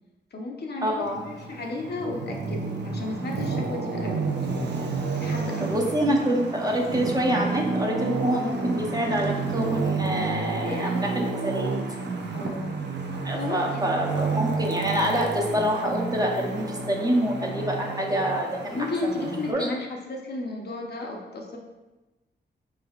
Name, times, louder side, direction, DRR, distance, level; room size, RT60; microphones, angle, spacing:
voice 1, 0.3-4.8 5.1-5.8 10.5-11.0 12.3-13.9 18.7-21.6, left 2 dB, 60° left, 0 dB, 0.7 m, -34 dB
voice 2, 0.8-1.2 5.6-11.1 11.4-11.7 13.2-19.7, equal, 20° right, 0 dB, 0.6 m, -26 dB
Traffic noise roadway noise, 1.0-19.5, right 4 dB, 65° right, 0.5 m, -30 dB
4.4 x 3.2 x 2.3 m, 1.1 s
cardioid pair, 80°, 19 cm